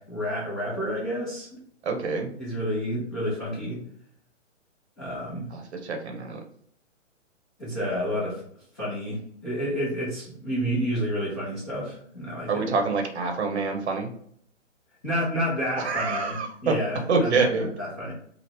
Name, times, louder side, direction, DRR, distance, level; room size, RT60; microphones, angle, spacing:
voice 1, 0.0-1.5 2.4-3.8 5.0-5.5 7.6-8.4 8.7-12.7 15.0-18.1, equal, 15° left, -13 dB, 0.8 m, -30 dB
voice 2, 1.8-2.3 5.5-6.4 12.5-14.1 15.8-16.7 17.1-17.7, right 4 dB, 60° right, 4 dB, 0.8 m, -26 dB
2.8 x 2.4 x 3.5 m, 0.63 s
hypercardioid pair, 175°, 38 cm